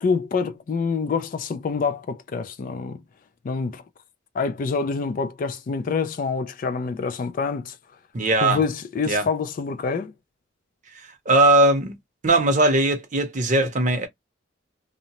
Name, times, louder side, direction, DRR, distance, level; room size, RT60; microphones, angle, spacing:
voice 1, 0.0-3.0 3.4-3.8 4.3-7.8 8.4-10.1, left 5 dB, 45° left, 0.3 m, -26 dB
voice 2, 8.1-8.6 9.1-9.3 10.9-11.9 12.2-14.1, right 2 dB, 40° right, 0.7 m, -19 dB
2.7 x 2.0 x 2.9 m
head